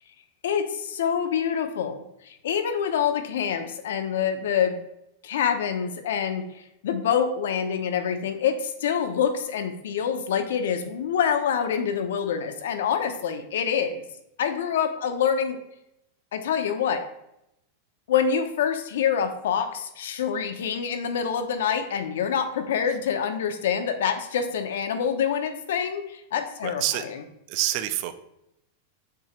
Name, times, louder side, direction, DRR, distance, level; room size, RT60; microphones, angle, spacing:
voice 1, 0.4-4.8 5.2-6.4 6.8-14.0 14.4-15.6 16.3-17.0 18.1-26.8, left 7 dB, 80° left, 7 dB, 0.8 m, -26 dB
voice 2, 26.6-27.1 27.5-28.2, right 13 dB, 45° right, 11 dB, 0.5 m, -27 dB
7.5 x 2.9 x 4.4 m, 0.82 s
supercardioid pair, 160°, 0 cm